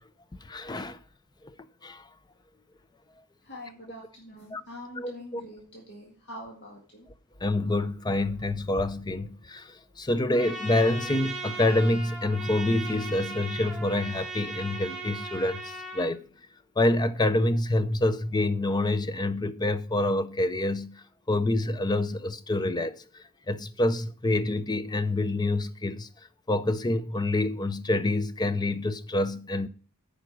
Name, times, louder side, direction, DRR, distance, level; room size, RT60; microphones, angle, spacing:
voice 1, 0.5-1.0 1.8-2.0 4.5-4.6 5.0-5.4 7.4-9.7 10.0-15.6 15.9-16.2 16.8-21.0 21.3-22.9 23.5-26.1 26.5-29.7, left 2 dB, 20° left, 0.5 m, -27 dB
voice 2, 3.4-7.1, left 1 dB, 55° left, 2.0 m, -44 dB
Trumpet, 10.3-16.1, right 2 dB, 5° right, 2.4 m, -38 dB
9.2 x 5.2 x 6.1 m
head